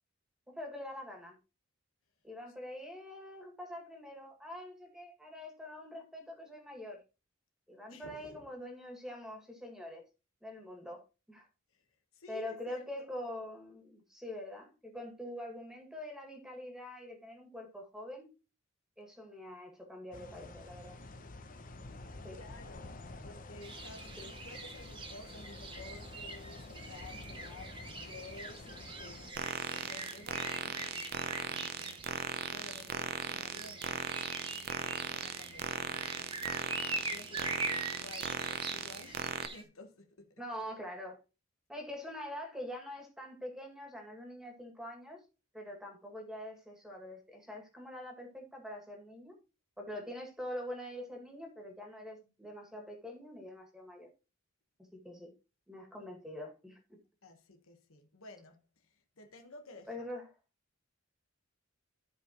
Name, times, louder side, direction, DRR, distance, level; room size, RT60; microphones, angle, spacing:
voice 1, 0.5-1.4 2.2-7.0 7.7-10.0 10.4-11.5 12.3-18.3 19.0-20.9 22.2-22.4 24.2-24.3 40.4-41.2 41.7-45.2 45.5-49.4 49.8-54.1 54.8-55.3 55.7-57.0 59.9-60.3, left 1 dB, 5° right, 2.1 m, -44 dB
voice 2, 7.9-8.5 11.7-11.8 12.1-12.8 22.3-34.1 34.7-40.4 57.2-60.0, left 2 dB, 75° left, 1.3 m, -53 dB
sound 1, 20.1-29.3, left 2 dB, 40° left, 0.8 m, -49 dB
sound 2, 23.6-39.6, right 2 dB, 25° right, 1.3 m, -43 dB
sound 3, 29.3-39.5, right 6 dB, 45° right, 0.7 m, -38 dB
14.5 x 5.0 x 3.0 m
head